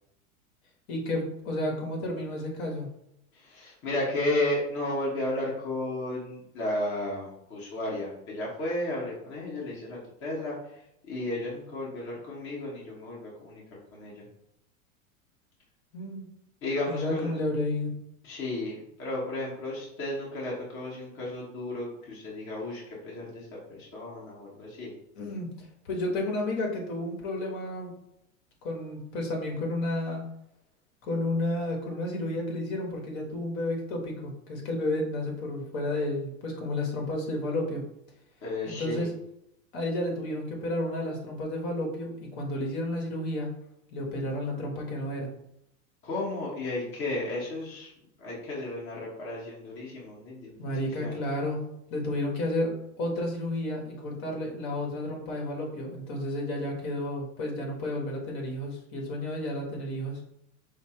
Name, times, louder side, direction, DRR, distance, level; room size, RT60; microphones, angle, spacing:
voice 1, 0.9-2.9 15.9-16.3 16.9-17.9 25.1-27.9 28.6-30.2 31.0-37.8 38.7-39.1 39.7-42.1 42.4-43.5 43.9-45.3 50.6-51.6 51.9-52.7 53.0-60.2, left 1 dB, 45° left, 0 dB, 1.5 m, -31 dB
voice 2, 3.3-10.6 11.1-14.2 16.6-17.3 18.2-23.4 23.8-24.9 38.4-39.1 46.0-47.9 48.2-50.6 51.0-51.1, left 1 dB, 30° left, -5 dB, 1.2 m, -33 dB
5.6 x 2.0 x 4.3 m, 0.79 s
supercardioid pair, 145°, 42 cm